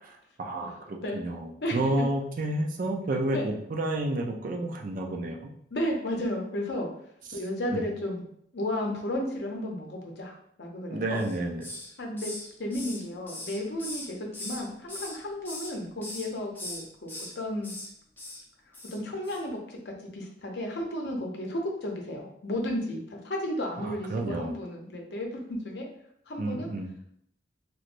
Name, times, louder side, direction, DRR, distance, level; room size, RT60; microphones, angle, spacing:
voice 1, 0.4-5.5 7.3-7.4 7.7-7.8 10.9-11.6 23.8-24.6 26.4-26.9, right 1 dB, 45° right, 2 dB, 0.4 m, -30 dB
voice 2, 5.7-6.9 7.3-8.2 8.5-11.2 12.0-12.3 12.6-17.7 18.8-25.9 26.3-26.7, left 1 dB, 65° left, 1 dB, 0.7 m, -33 dB
Hiss, 11.1-11.9 12.2-14.6 14.9-15.7 16.0-16.3 16.5-17.3 17.6-17.9 18.2-18.4 18.7-19.0 19.2-19.4, left 1 dB, 10° left, 0.5 m, -40 dB
3.0 x 3.0 x 2.5 m, 0.69 s
head